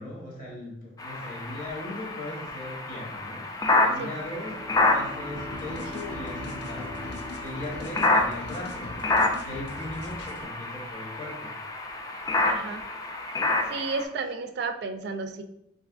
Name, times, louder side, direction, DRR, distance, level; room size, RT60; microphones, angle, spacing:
voice 1, 0.0-7.0 7.4-9.1 9.4-11.5, left 1 dB, 50° left, -4 dB, 1.0 m, -39 dB
sound 1, 1.0-14.0, left 2 dB, 20° left, 0.3 m, -29 dB
Bowed string instrument, 4.2-8.8, left 1 dB, 20° right, 0.8 m, -43 dB
sound 2, 5.3-10.4, left 1 dB, 75° left, 0.5 m, -42 dB
voice 2, 12.4-12.8 13.7-15.4, right 4 dB, 65° right, 7 dB, 0.4 m, -32 dB
3.4 x 2.7 x 2.4 m, 0.79 s
head